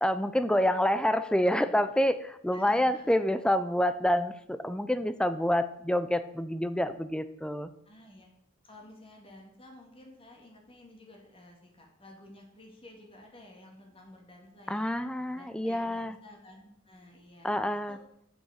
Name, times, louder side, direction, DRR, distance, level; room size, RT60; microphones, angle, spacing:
voice 1, 0.0-7.7 14.7-16.1 17.4-18.0, left 1 dB, 5° left, 12 dB, 0.4 m, -27 dB
voice 2, 2.5-3.2 7.9-8.3 8.6-14.9 15.3-18.0, left 1 dB, 30° left, 1 dB, 2.1 m, -52 dB
8.0 x 6.1 x 6.3 m, 0.73 s
head